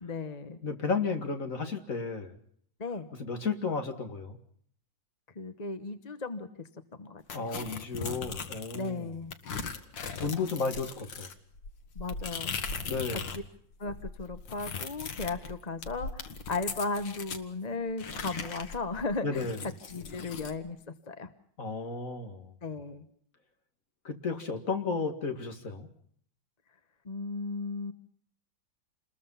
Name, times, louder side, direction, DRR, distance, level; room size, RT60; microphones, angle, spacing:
voice 1, 0.0-0.6 2.8-3.1 5.3-6.5 7.0-7.5 8.7-9.4 11.9-12.6 13.1-13.2 13.8-16.2 16.5-19.5 19.9-20.8 21.1-21.3 22.6-23.0 27.0-27.9, left 3 dB, 25° left, 9 dB, 1.0 m, -35 dB
voice 2, 0.6-2.3 3.1-4.4 7.3-9.1 10.2-11.3 12.9-13.3 19.2-19.6 21.6-22.5 24.0-25.9, left 4 dB, 45° left, 5 dB, 2.4 m, -33 dB
sound 1, 7.3-8.9 9.3-13.5 13.7-17.4 18.0-20.6, left 5 dB, 90° left, 2.2 m, -39 dB
28.5 x 21.0 x 5.7 m, 0.63 s
omnidirectional pair, 2.0 m